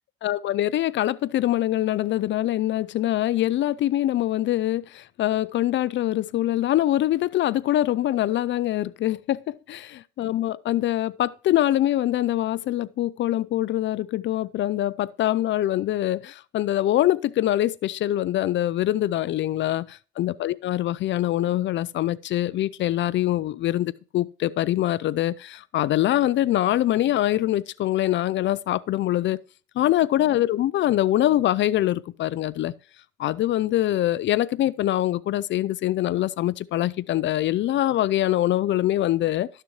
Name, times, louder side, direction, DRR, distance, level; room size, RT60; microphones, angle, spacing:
voice 1, 0.2-29.4 29.8-32.7 33.2-39.5, left 13 dB, 65° left, 0.5 m, -24 dB
13.0 x 6.7 x 3.1 m
cardioid pair, 90°, 20 cm